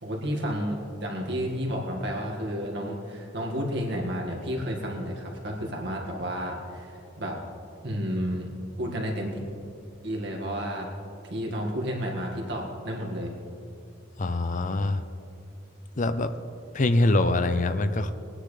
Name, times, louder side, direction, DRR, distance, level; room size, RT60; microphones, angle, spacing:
voice 1, 0.0-7.4 7.8-8.5 8.8-9.4 10.0-10.9 11.3-13.3, equal, 60° right, -1 dB, 2.0 m, -31 dB
voice 2, 14.2-15.0 16.0-16.3 16.7-18.1, left 2 dB, 40° left, 10 dB, 0.6 m, -24 dB
19.5 x 9.9 x 3.3 m, 2.7 s
head